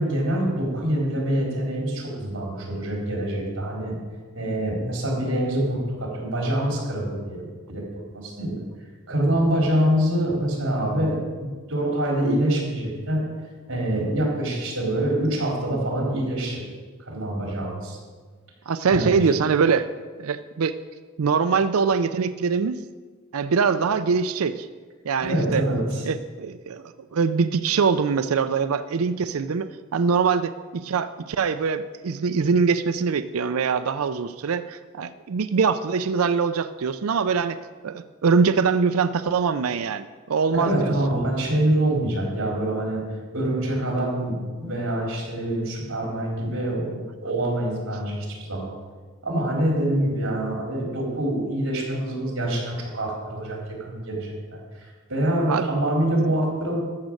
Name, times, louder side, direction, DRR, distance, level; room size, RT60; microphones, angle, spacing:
voice 1, 0.0-4.0 4.3-7.9 8.1-8.6 9.1-13.2 13.7-16.6 17.0-18.0 18.9-19.3 25.2-26.0 40.6-48.7 49.2-54.8 55.1-56.8, right 1 dB, 65° right, -1 dB, 4.1 m, -25 dB
voice 2, 18.7-19.9 20.2-20.8 21.2-22.8 23.3-24.7 25.0-25.7 26.0-37.6 37.8-40.9 55.5-55.7, right 5 dB, 90° right, 12 dB, 0.5 m, -23 dB
13.5 x 6.4 x 7.7 m, 1.4 s
head